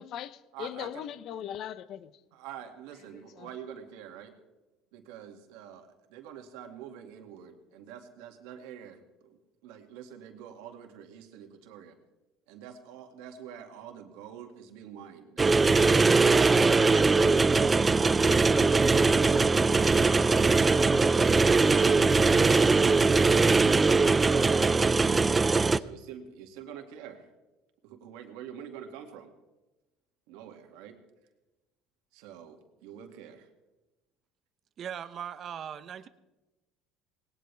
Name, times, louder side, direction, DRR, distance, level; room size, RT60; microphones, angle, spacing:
voice 1, 0.0-2.1 3.1-3.5, left 10 dB, 55° left, 0.7 m, -39 dB
voice 2, 0.5-1.1 2.3-4.3 4.9-12.0 12.5-17.6 19.6-20.5 24.0-24.6 25.7-27.3 27.8-29.3 30.3-31.0 32.1-33.5, right 9 dB, 85° right, 2.3 m, -46 dB
sound 1, 15.4-25.8, right 4 dB, 15° right, 0.4 m, -21 dB
voice 3, 34.8-36.1, right 9 dB, 40° right, 0.9 m, -39 dB
19.5 x 18.5 x 3.5 m
cardioid pair, 135°, 0 cm